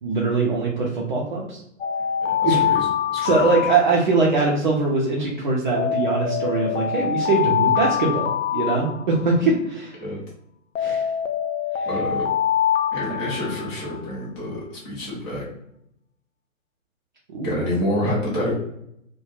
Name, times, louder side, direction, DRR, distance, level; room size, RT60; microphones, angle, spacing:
voice 1, 0.0-1.6 2.4-2.6 3.2-10.0 10.8-11.0 11.8-11.9 13.2-13.3 17.3-17.5, right 3 dB, 40° right, -3 dB, 0.5 m, -22 dB
Alarm, 1.8-4.4 5.8-9.4 10.8-14.0, left 9 dB, 75° left, 0.5 m, -24 dB
voice 2, 2.2-3.6 10.0-10.2 11.9-12.3 12.9-15.4 17.4-18.6, left 1 dB, 10° left, -5 dB, 0.5 m, -28 dB
2.3 x 2.1 x 3.0 m, 0.77 s
figure-of-eight pair, 125°, 38 cm